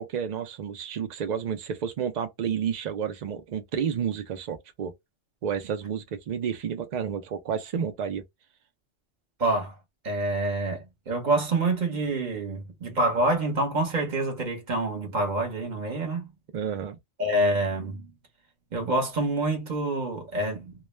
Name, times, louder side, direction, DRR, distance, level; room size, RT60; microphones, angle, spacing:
voice 1, 0.0-4.9 5.4-8.2 16.5-17.0, right 7 dB, 80° right, 0.4 m, -30 dB
voice 2, 9.4-9.7 10.0-16.3 17.2-18.1 18.7-20.7, right 2 dB, 40° right, 0.9 m, -27 dB
2.3 x 2.1 x 3.1 m
omnidirectional pair, 1.3 m